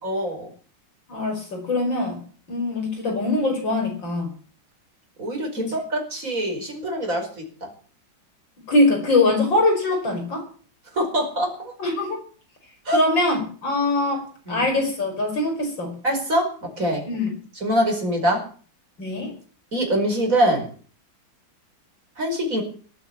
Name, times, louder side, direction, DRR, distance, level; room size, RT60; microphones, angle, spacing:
voice 1, 0.0-0.5 5.2-7.7 11.0-11.7 12.9-13.0 14.5-14.6 16.0-16.5 16.8-17.0 17.6-18.4 19.7-20.7 22.2-22.6, equal, 45° right, 1 dB, 5.4 m, -24 dB
voice 2, 1.1-2.2 2.5-4.3 5.6-5.7 8.7-10.4 11.8-12.2 12.9-15.9 17.1-17.3 19.0-19.3, left 2 dB, 75° left, 3 dB, 6.1 m, -22 dB
18.0 x 9.2 x 8.6 m, 0.43 s
omnidirectional pair, 2.1 m